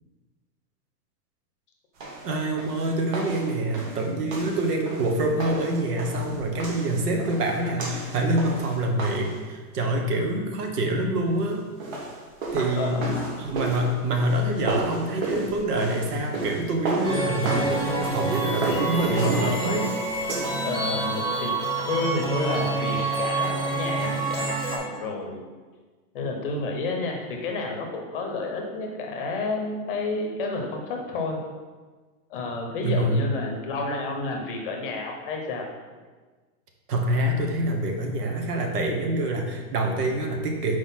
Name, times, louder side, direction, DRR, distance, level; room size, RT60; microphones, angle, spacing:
sound 1, 2.0-9.4 11.6-20.8, right 2 dB, 55° right, 1.3 m, -33 dB
voice 1, 2.2-11.7 12.5-13.1 13.4-19.9 32.8-33.3 36.9-40.8, right 1 dB, 75° right, 2 dB, 1.3 m, -26 dB
voice 2, 12.8-13.5 20.6-21.5 21.9-25.4 26.1-31.4 32.3-35.6, left 3 dB, 35° left, 2 dB, 0.8 m, -30 dB
sound 2, 17.0-24.8, right 2 dB, 15° right, 0.5 m, -27 dB
4.8 x 4.1 x 5.6 m, 1.4 s
supercardioid pair, 175°, 47 cm